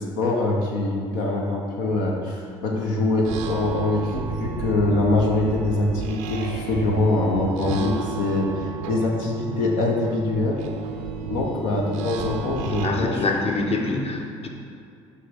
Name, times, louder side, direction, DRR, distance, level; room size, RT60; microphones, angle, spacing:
voice 1, 0.0-10.6 11.3-13.2, left 2 dB, 75° left, -1 dB, 0.8 m, -24 dB
sound 1, 3.2-12.9, right 5 dB, 80° right, 0.5 m, -32 dB
voice 2, 12.8-14.5, left 3 dB, 40° left, 2 dB, 0.9 m, -25 dB
6.6 x 3.3 x 5.1 m, 2.4 s
hypercardioid pair, 55°, 16 cm